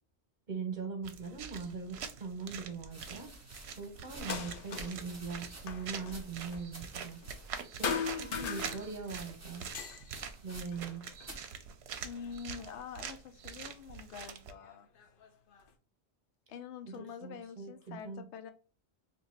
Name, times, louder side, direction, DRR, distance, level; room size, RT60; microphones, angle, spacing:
voice 1, 0.5-3.3 3.7-7.2 7.7-9.7 10.4-11.0 16.8-18.3, right 5 dB, 45° right, 3 dB, 0.9 m, -41 dB
sound 1, 1.0-14.5, right 7 dB, 70° right, 0.8 m, -45 dB
sound 2, 2.9-10.9 11.2-11.5 12.3-12.7, right 1 dB, 20° right, 0.4 m, -52 dB
sound 3, 4.1-5.1 5.3-7.6 7.8-9.2 9.6-11.4 12.1-13.0 13.9-14.0 14.7-15.7, left 6 dB, 60° left, 0.7 m, -40 dB
voice 2, 12.0-14.9 16.5-18.5, left 7 dB, 90° left, 8 dB, 0.9 m, -46 dB
2.8 x 2.6 x 4.1 m, 0.35 s
omnidirectional pair, 1.1 m